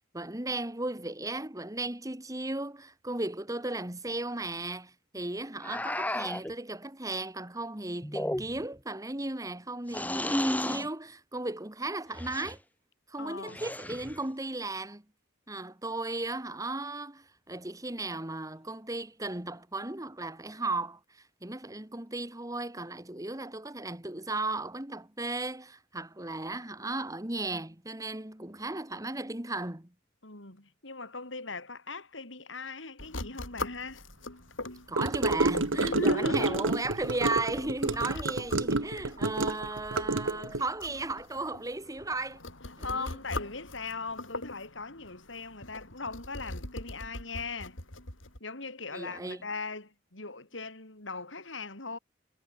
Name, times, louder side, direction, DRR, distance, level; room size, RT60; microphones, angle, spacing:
voice 1, 0.1-12.6 13.1-15.0 15.5-29.9 34.9-42.4 42.8-43.1 48.9-49.4, right 2 dB, 20° right, 2.1 m, -35 dB
sound 1, 5.6-6.5 8.0-8.8 9.9-10.9 12.1-12.6 13.5-14.2, left 1 dB, 10° left, 2.7 m, -33 dB
voice 2, 13.2-13.6 30.2-34.0 35.8-36.8 42.8-47.8 48.4-52.0, left 3 dB, 70° left, 4.7 m, -39 dB
sound 2, 33.0-48.4, left 2 dB, 90° left, 7.2 m, -43 dB
Gurgling / Car passing by / Sink (filling or washing), 35.0-40.6, right 2 dB, 90° right, 1.6 m, -29 dB
head